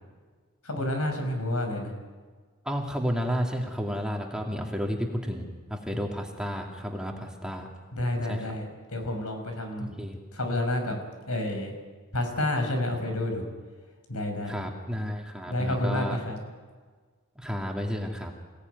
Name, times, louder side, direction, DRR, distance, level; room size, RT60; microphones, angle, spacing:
voice 1, 0.6-1.9 7.9-9.9 10.3-11.0 11.3-11.7 12.1-13.4 14.1-14.6 15.5-16.4, left 1 dB, 75° left, 4 dB, 6.0 m, -29 dB
voice 2, 2.6-7.7 8.2-8.5 9.8-10.2 14.4-16.2 17.4-18.3, equal, 5° right, 0 dB, 2.5 m, -32 dB
28.0 x 18.0 x 9.6 m, 1.5 s
head